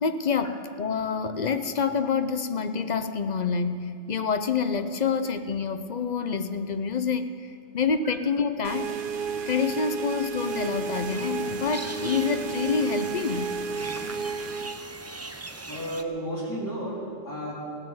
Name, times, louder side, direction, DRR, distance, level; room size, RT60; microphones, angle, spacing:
voice 1, 0.0-8.9 9.5-13.6, left 5 dB, 45° left, 10 dB, 0.7 m, -27 dB
sound 1, 8.6-14.8, right 5 dB, 55° right, 0.8 m, -32 dB
sound 2, 10.4-16.0, right 2 dB, 20° right, 0.4 m, -41 dB
voice 2, 15.6-17.5, right 1 dB, 15° left, -7 dB, 3.9 m, -33 dB
17.0 x 9.5 x 7.8 m, 2.6 s
omnidirectional pair, 1.2 m